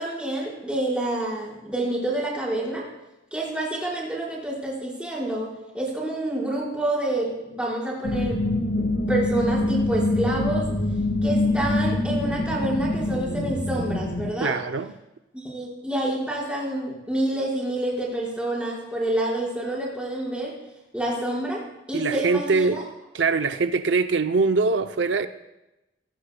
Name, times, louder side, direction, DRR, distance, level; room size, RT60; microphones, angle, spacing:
voice 1, 0.0-2.8 3.3-5.5 5.7-8.4 8.8-10.7 11.2-14.5 15.3-20.5 20.9-21.6 21.9-22.8, right 1 dB, 5° right, 4.8 m, -28 dB
sound 1, 8.0-14.3, left 2 dB, 65° left, 1.6 m, -25 dB
voice 2, 14.4-14.9 21.9-22.8 23.1-25.3, right 4 dB, 80° right, 0.6 m, -23 dB
24.5 x 16.0 x 2.3 m
head